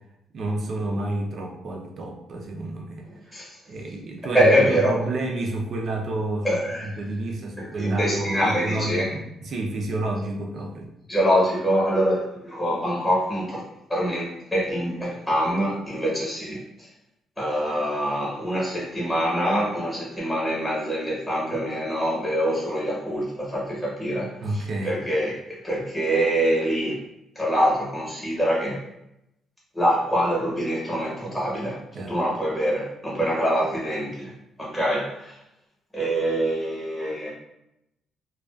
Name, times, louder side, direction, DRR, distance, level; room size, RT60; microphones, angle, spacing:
voice 1, 0.3-3.0 3.7-6.5 6.8-10.9 24.4-25.0 31.9-32.2, right 2 dB, 50° right, 1 dB, 0.5 m, -29 dB
voice 2, 4.3-4.9 6.4-7.0 7.6-9.1 11.1-13.6 13.9-16.9 17.4-25.4 25.6-27.0 27.3-28.8 29.7-31.8 32.1-34.3 34.6-35.4 35.9-37.3, equal, 5° left, -5 dB, 0.9 m, -24 dB
2.4 x 2.2 x 2.3 m, 0.84 s
cardioid pair, 125°, 0 cm